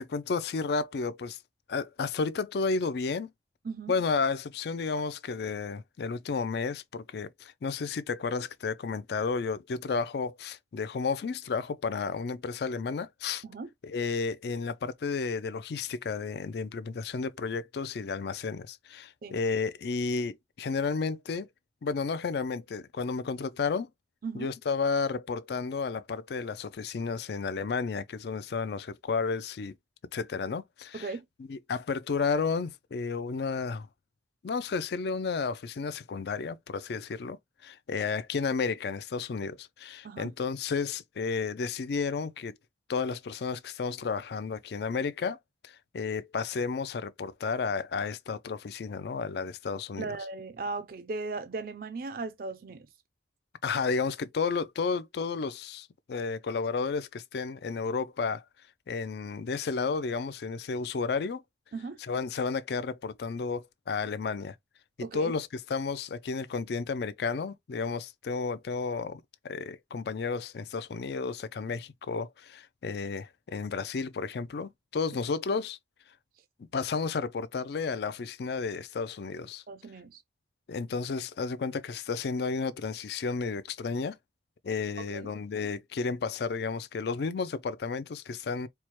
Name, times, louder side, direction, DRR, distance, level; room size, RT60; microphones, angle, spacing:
voice 1, 0.0-1.4 1.7-3.3 3.9-13.4 13.8-21.5 21.8-23.9 24.3-29.7 30.1-31.1 31.5-33.9 34.4-42.5 42.9-45.4 45.6-50.1 53.6-58.4 58.9-61.4 62.0-64.5 65.1-75.8 76.7-79.6 80.7-84.2 84.6-88.7, left 4 dB, 60° left, 0.4 m, -32 dB
voice 2, 30.9-31.2 40.0-40.3 50.0-52.9 61.7-62.0 65.0-65.3 79.7-80.2 85.1-85.3, right 3 dB, 50° right, 0.4 m, -37 dB
4.5 x 2.1 x 2.9 m
head